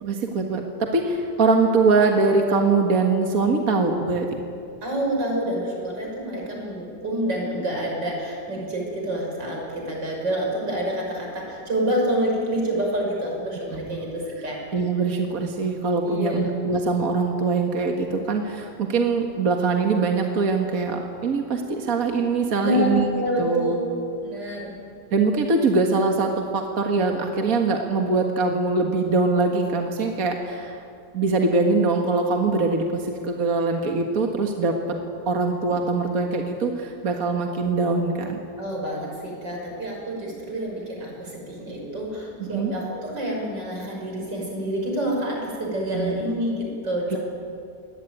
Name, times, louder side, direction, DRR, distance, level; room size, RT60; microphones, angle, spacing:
voice 1, 0.0-4.4 13.7-14.0 14.7-23.1 23.4-23.8 24.4-24.6 25.1-30.8 31.1-35.0 35.3-38.4 42.4-42.7 45.9-46.2 47.1-47.2, right 3 dB, 55° right, 2 dB, 2.1 m, -23 dB
voice 2, 4.8-14.6 16.0-16.5 22.6-22.9 23.2-23.8 24.2-24.7 38.6-47.2, equal, 90° right, -1 dB, 6.7 m, -28 dB
23.5 x 19.0 x 9.3 m, 2.5 s
omnidirectional pair, 1.9 m